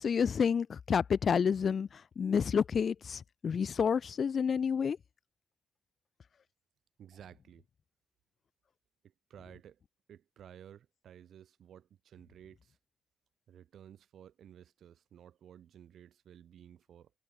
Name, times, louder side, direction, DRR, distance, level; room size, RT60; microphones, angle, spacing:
voice 1, 0.0-1.9 2.2-5.0, left 6 dB, 45° left, 0.3 m, -29 dB
voice 2, 7.0-7.7 9.0-9.8 10.1-12.8 13.5-17.1, right 9 dB, 80° right, 2.2 m, -55 dB
wide cardioid pair, 165°, 0 cm